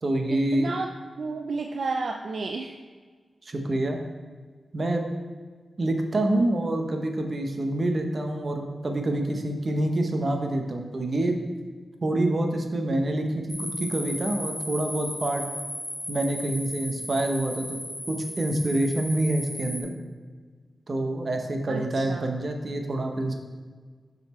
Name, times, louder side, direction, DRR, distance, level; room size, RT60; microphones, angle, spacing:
voice 1, 0.0-0.7 3.4-4.0 4.7-5.1 5.8-11.4 12.0-15.4 16.1-17.8 18.1-19.9 20.9-23.3, right 1 dB, 45° right, 4 dB, 0.8 m, -27 dB
voice 2, 0.5-0.9 1.2-2.7 21.7-22.3, right 3 dB, 70° right, 4 dB, 0.4 m, -31 dB
sound 1, 13.5-19.8, left 1 dB, 15° left, 1.5 m, -36 dB
7.0 x 4.1 x 4.3 m, 1.5 s
wide cardioid pair, 85°, 0 cm